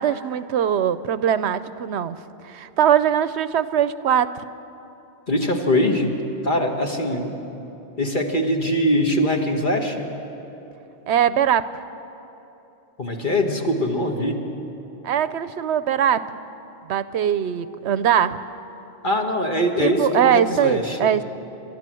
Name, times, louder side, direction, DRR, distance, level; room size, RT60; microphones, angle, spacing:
voice 1, 0.0-2.2 2.4-4.3 11.1-11.7 15.0-16.2 16.9-18.4 19.8-21.2, right 9 dB, 75° right, 14 dB, 0.9 m, -21 dB
voice 2, 5.3-6.1 6.4-7.4 8.0-10.1 13.0-14.4 19.0-21.0, left 1 dB, 45° left, 2 dB, 1.9 m, -22 dB
29.5 x 12.5 x 7.6 m, 3.0 s
omnidirectional pair, 1.2 m